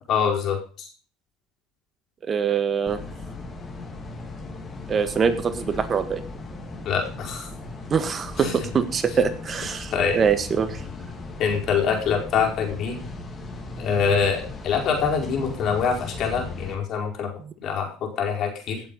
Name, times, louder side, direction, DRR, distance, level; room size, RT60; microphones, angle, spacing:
voice 1, 0.1-0.9 6.8-7.5 8.4-8.6 9.9-10.2 11.4-13.1 13.8-17.3 17.6-18.8, left 6 dB, 50° left, 2 dB, 5.0 m, -25 dB
voice 2, 2.2-3.0 4.9-6.2 7.9-10.8, right 6 dB, 35° right, 10 dB, 1.6 m, -24 dB
sound 1, 2.9-16.7, left 3 dB, 25° left, 3.4 m, -37 dB
17.0 x 7.8 x 5.5 m, 0.40 s
supercardioid pair, 105°, 0 cm